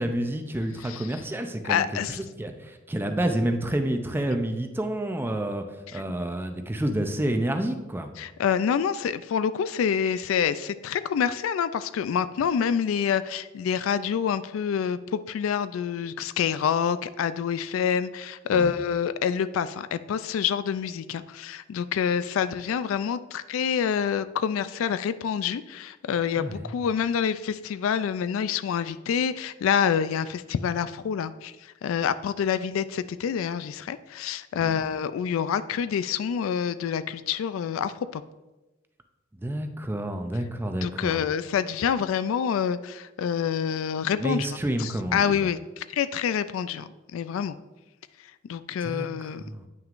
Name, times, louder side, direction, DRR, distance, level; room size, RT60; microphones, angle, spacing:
voice 1, 0.0-2.0 2.4-5.6 5.9-8.1 18.5-18.8 26.4-26.8 34.6-34.8 39.3-41.2 44.2-45.5 48.8-49.7, right 1 dB, 10° right, 6 dB, 0.5 m, -29 dB
voice 2, 1.6-2.2 5.9-6.0 8.2-38.2 40.8-44.5 44.8-47.6 48.5-49.4, left 7 dB, 75° left, 14 dB, 0.3 m, -27 dB
9.1 x 5.8 x 2.5 m, 1.1 s
head